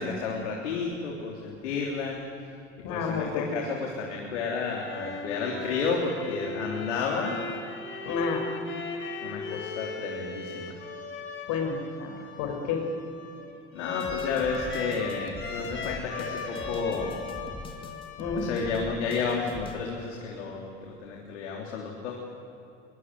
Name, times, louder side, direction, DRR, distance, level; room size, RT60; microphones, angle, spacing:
voice 1, 0.0-2.2 2.9-7.4 9.2-10.7 13.7-17.1 18.3-22.2, left 5 dB, 80° left, -1 dB, 3.4 m, -31 dB
voice 2, 2.8-3.5 8.0-8.4 11.5-12.8 18.2-18.5, left 5 dB, 60° left, 3 dB, 5.9 m, -30 dB
sound 1, 4.5-19.2, left 4 dB, 35° left, 3.9 m, -38 dB
sound 2, 14.0-19.8, left 3 dB, 15° left, 2.9 m, -43 dB
23.0 x 21.5 x 9.3 m, 2.7 s
hypercardioid pair, 80°, 35 cm